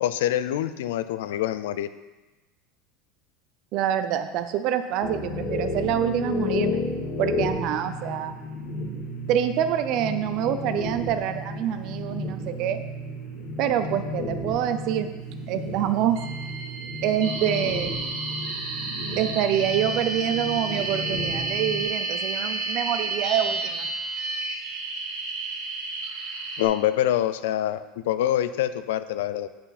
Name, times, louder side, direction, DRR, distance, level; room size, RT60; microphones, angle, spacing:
voice 1, 0.0-1.9 26.6-29.5, left 12 dB, 90° left, 13 dB, 0.4 m, -25 dB
voice 2, 3.7-6.8 7.2-8.4 9.3-12.8 13.6-15.1 15.5-16.2 17.0-17.9 19.2-23.9, right 10 dB, 50° right, 9 dB, 0.5 m, -26 dB
sound 1, 5.0-21.8, left 2 dB, 40° left, 1.5 m, -32 dB
sound 2, 16.2-26.6, right 3 dB, 70° right, 1.5 m, -31 dB
8.6 x 5.7 x 4.2 m, 1.2 s
supercardioid pair, 145°, 0 cm